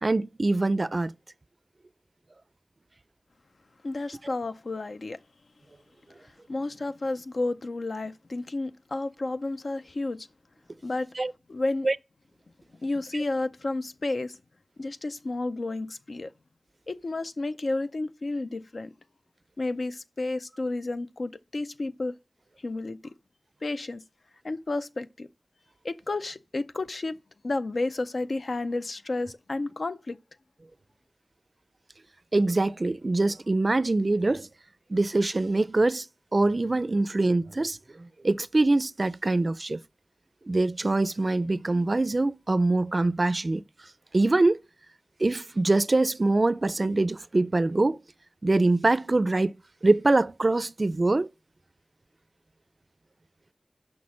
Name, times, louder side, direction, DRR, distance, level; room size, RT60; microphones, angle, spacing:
voice 1, 0.0-1.1 4.2-4.3 11.2-11.3 11.8-12.0 32.3-34.5 34.9-36.1 36.3-39.8 40.5-43.6 44.1-44.6 45.2-48.0 48.4-49.5 49.8-51.3, right 2 dB, 50° right, 0.4 m, -24 dB
voice 2, 3.8-5.2 6.2-10.3 10.8-11.1 11.5-11.9 12.8-14.4 14.8-16.3 16.9-18.9 19.6-22.1 22.6-23.1 23.6-24.0 24.4-25.3 25.8-27.2 27.4-30.2, left 2 dB, 80° left, 0.5 m, -31 dB
6.0 x 5.9 x 6.3 m
wide cardioid pair, 55°, 0 cm